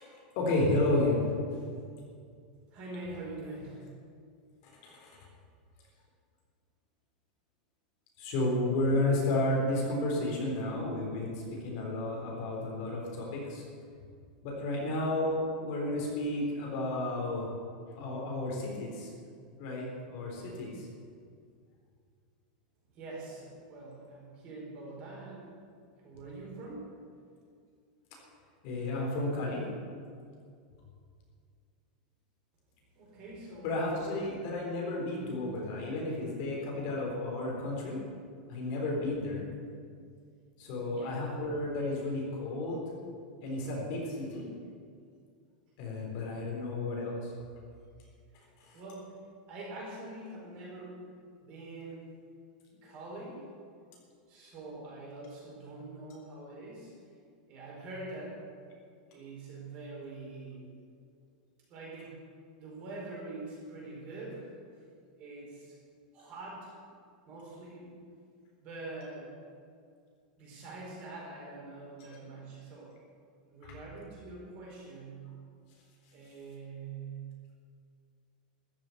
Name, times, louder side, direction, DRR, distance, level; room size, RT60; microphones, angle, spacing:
voice 1, 0.0-1.6 4.6-5.1 8.2-13.6 14.4-17.5 18.0-19.1 19.6-20.9 28.6-29.6 33.6-38.0 38.5-39.5 40.6-42.8 43.4-44.5 45.8-47.3 48.6-48.8, left 2 dB, 40° left, -2 dB, 3.8 m, -32 dB
voice 2, 2.7-3.8 22.9-25.6 26.0-26.9 32.9-33.8 40.9-41.2 48.7-49.2 49.5-51.0 51.4-52.1 52.7-53.5 54.3-56.9 57.5-58.4 59.1-60.7 61.7-62.2 62.6-64.5 65.2-65.7 66.1-66.7 67.3-68.1 68.6-69.3 70.4-72.9 73.5-75.3 76.1-77.3, right 2 dB, 30° right, -4 dB, 4.8 m, -44 dB
14.0 x 7.5 x 9.6 m, 2.2 s
supercardioid pair, 175°, 4 cm